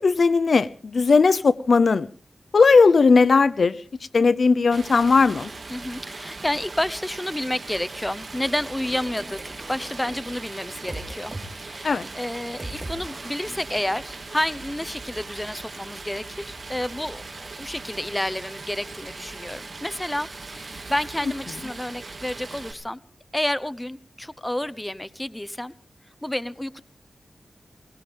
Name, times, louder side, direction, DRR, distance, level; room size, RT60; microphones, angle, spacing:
voice 1, 0.0-2.1 2.5-3.8 4.1-5.5 11.8-12.0, left 4 dB, 70° left, 0.7 m, -17 dB
Stream, 4.7-22.7, right 3 dB, 50° right, 2.9 m, -39 dB
voice 2, 5.7-11.3 11.6-23.0 23.3-25.7 26.2-26.8, left 1 dB, 10° left, 0.8 m, -30 dB
sound 1, 8.6-11.5 11.7-12.0 12.6-14.1, right 1 dB, 20° right, 3.8 m, -41 dB
22.0 x 18.5 x 3.4 m
wide cardioid pair, 75°, 0 cm